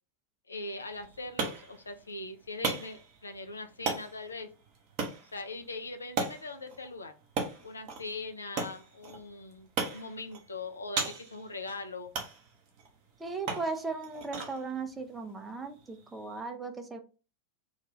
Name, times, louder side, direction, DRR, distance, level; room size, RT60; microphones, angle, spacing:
voice 1, 0.5-4.5 5.3-7.1 7.6-12.1, left 3 dB, 75° left, 7 dB, 0.4 m, -41 dB
sound 1, 0.8-16.4, right 4 dB, 40° right, 0.8 m, -39 dB
voice 2, 13.2-17.0, right 4 dB, 10° right, 6 dB, 0.5 m, -37 dB
2.4 x 2.3 x 3.0 m, 0.34 s
figure-of-eight pair, 90°, 0 cm